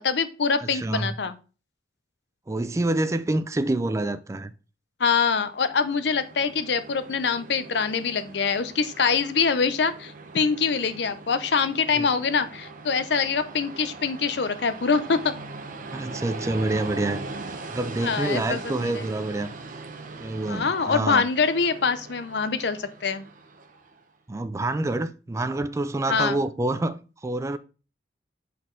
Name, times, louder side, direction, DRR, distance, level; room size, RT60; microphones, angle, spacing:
voice 1, 0.0-1.3 5.0-15.3 18.0-19.0 20.5-23.3 26.1-26.4, left 5 dB, 65° left, 0.6 m, -24 dB
voice 2, 0.6-1.1 2.5-4.5 11.9-12.1 15.9-17.2 17.7-19.5 20.2-21.2 24.3-27.6, right 2 dB, 15° right, 0.3 m, -27 dB
Train, 5.4-24.0, right 3 dB, 45° right, 0.7 m, -40 dB
6.3 x 4.2 x 3.7 m
head